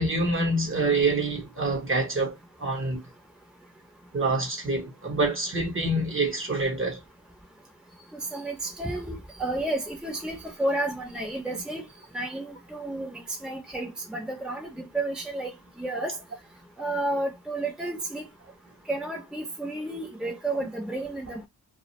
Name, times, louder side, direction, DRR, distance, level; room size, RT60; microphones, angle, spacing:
voice 1, 0.0-3.1 4.1-7.0, right 2 dB, 35° right, 0.8 m, -26 dB
voice 2, 8.1-11.8 12.1-15.5 15.8-16.2 16.8-18.3 18.9-21.5, right 2 dB, ahead, 0.7 m, -31 dB
2.3 x 2.1 x 2.9 m
wide cardioid pair, 80°, 37 cm